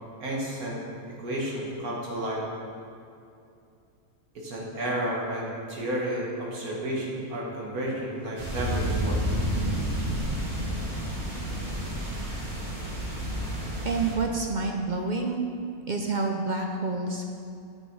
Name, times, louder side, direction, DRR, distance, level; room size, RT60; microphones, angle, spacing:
voice 1, 0.2-0.8 1.2-2.4 4.3-9.2, right 1 dB, 80° right, -3 dB, 2.2 m, -31 dB
sound 1, 8.4-14.1, equal, 35° right, 1.7 m, -30 dB
voice 2, 13.8-15.4 15.9-17.3, right 3 dB, 55° right, 2 dB, 0.5 m, -28 dB
8.1 x 7.0 x 4.8 m, 2.5 s
omnidirectional pair, 1.5 m